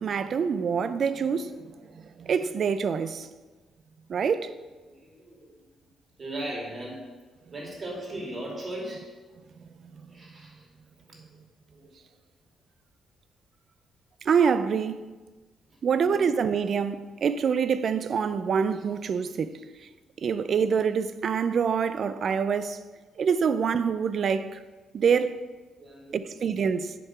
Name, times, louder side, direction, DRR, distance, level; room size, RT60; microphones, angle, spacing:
voice 1, 0.0-3.3 4.1-4.5 14.2-15.0 15.8-19.9 20.2-22.8 23.2-24.6 24.9-25.4 26.1-27.0, right 6 dB, 55° right, 0.4 m, -26 dB
voice 2, 4.8-5.6 6.2-7.1 7.5-9.1 10.1-10.7 11.0-11.4 11.7-12.0 15.7-15.8 16.1-16.3 25.8-26.2, right 1 dB, 40° right, 2.6 m, -38 dB
8.3 x 3.6 x 5.9 m
cardioid pair, 90°, 0 cm